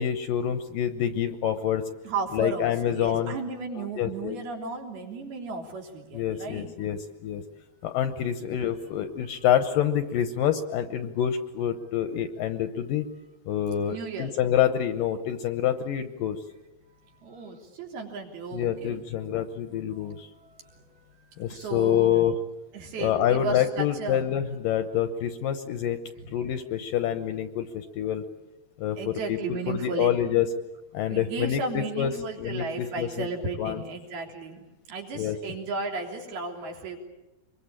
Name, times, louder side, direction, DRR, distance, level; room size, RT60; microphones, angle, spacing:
voice 1, 0.0-1.8 2.3-3.4 3.8-4.4 6.1-7.4 7.8-13.1 13.5-16.4 18.5-20.3 21.4-22.3 23.0-26.0 26.3-28.2 28.8-29.4 29.7-30.5 30.9-32.1 32.4-33.3 33.6-33.8 35.2-35.4, left 10 dB, 70° left, 9 dB, 2.3 m, -27 dB
voice 2, 2.0-6.7 13.9-14.3 17.2-18.9 21.5-22.3 22.7-24.2 29.0-30.2 31.1-34.6 34.9-37.0, right 4 dB, 65° right, 2 dB, 5.2 m, -34 dB
26.0 x 22.5 x 8.8 m, 1.0 s
omnidirectional pair, 4.7 m